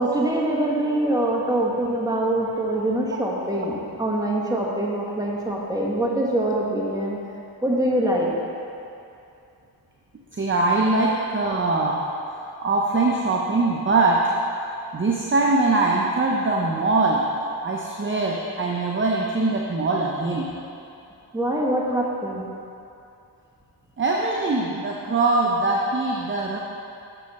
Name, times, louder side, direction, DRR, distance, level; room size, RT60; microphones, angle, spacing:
voice 1, 0.0-7.2 7.6-8.3 21.3-22.4, right 1 dB, 10° right, -3 dB, 1.4 m, -24 dB
voice 2, 10.3-12.1 12.6-14.3 14.9-17.3 17.6-20.5 24.0-26.6, right 3 dB, 30° right, -2 dB, 0.7 m, -22 dB
7.7 x 6.4 x 4.2 m, 2.6 s
cardioid pair, 65°, 40 cm